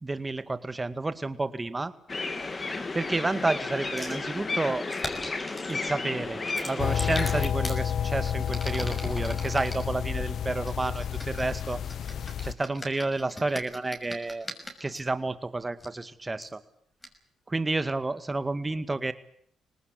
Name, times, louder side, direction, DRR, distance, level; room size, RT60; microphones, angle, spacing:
voice 1, 0.0-1.9 2.9-4.8 5.7-11.8 12.4-14.5 14.8-16.6 17.5-19.1, right 2 dB, 20° right, 12 dB, 2.0 m, -30 dB
sound 1, 2.1-7.5, left 3 dB, 30° left, 3.0 m, -33 dB
sound 2, 4.0-4.2 4.9-5.8 6.5-7.8 8.4-9.8 10.6-15.0 15.8-15.9 16.4-16.5 17.0-17.1, equal, 10° left, 6.1 m, -40 dB
sound 3, 6.8-12.5, left 8 dB, 65° left, 1.1 m, -30 dB
24.5 x 19.0 x 8.2 m, 0.64 s
cardioid pair, 90°, 0 cm